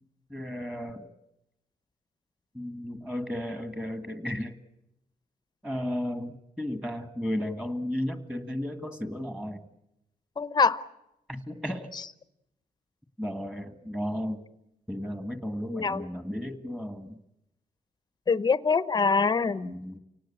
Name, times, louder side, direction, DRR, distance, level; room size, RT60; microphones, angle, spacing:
voice 1, 0.3-1.1 2.5-4.6 5.6-9.6 11.3-11.9 13.2-14.4 14.9-17.2 19.6-20.0, left 1 dB, 5° right, 8 dB, 1.9 m, -34 dB
voice 2, 10.4-10.8 15.7-16.0 18.3-19.7, left 4 dB, 25° left, 14 dB, 0.8 m, -24 dB
29.5 x 18.5 x 8.7 m, 0.88 s
wide cardioid pair, 155°, 15 cm